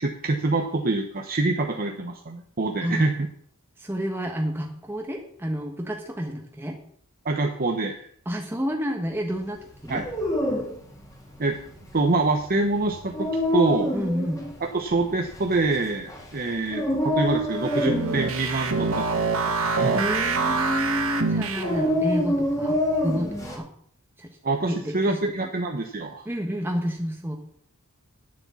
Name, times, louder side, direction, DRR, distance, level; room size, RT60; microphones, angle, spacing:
voice 1, 0.2-3.3 7.2-8.0 9.9-10.1 11.4-11.6 11.9-13.9 14.7-19.1 19.6-20.0 24.4-26.3, right 2 dB, 40° right, 3 dB, 1.0 m, -25 dB
voice 2, 3.8-6.8 8.2-10.0 13.9-14.5 19.9-23.7 24.2-24.3 24.6-25.5 26.2-27.4, equal, 10° right, 1 dB, 1.4 m, -29 dB
Dog, 9.8-23.6, left 1 dB, 15° left, 2.5 m, -28 dB
sound 1, 17.5-22.0, right 4 dB, 65° right, 1.4 m, -26 dB
10.0 x 7.5 x 7.1 m, 0.63 s
head